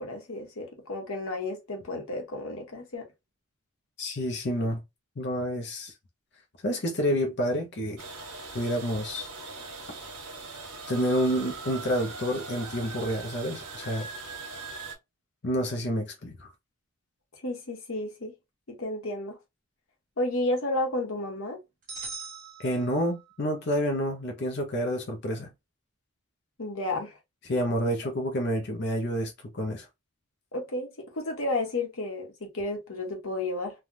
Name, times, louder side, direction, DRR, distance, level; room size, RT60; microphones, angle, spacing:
voice 1, 0.0-3.0 17.4-18.3 18.7-19.4 20.2-21.6 26.6-27.2 30.5-33.7, left 2 dB, 70° left, 1.2 m, -32 dB
voice 2, 4.0-4.8 5.2-5.9 6.6-8.0 8.5-9.3 10.9-14.1 15.4-16.5 22.6-25.5 27.4-29.9, equal, 50° left, 0.6 m, -29 dB
sound 1, 8.0-14.9, right 3 dB, 90° right, 1.1 m, -40 dB
sound 2, 21.9-23.4, right 4 dB, 35° right, 1.2 m, -41 dB
3.3 x 2.3 x 2.5 m
head